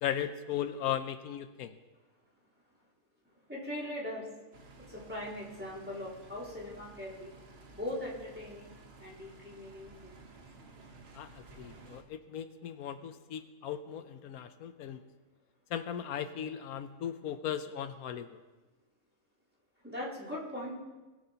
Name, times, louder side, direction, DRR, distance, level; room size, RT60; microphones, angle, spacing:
voice 1, 0.0-1.8 11.1-15.0 15.7-18.4, left 9 dB, 85° left, 10 dB, 1.1 m, -37 dB
voice 2, 3.5-4.2 4.9-7.3 7.7-8.7 9.0-10.1 19.8-20.7, left 1 dB, 10° right, -9 dB, 3.7 m, -40 dB
sound 1, 4.5-12.0, right 3 dB, 45° right, 1.3 m, -54 dB
20.5 x 9.8 x 2.9 m, 1.2 s
omnidirectional pair, 1.5 m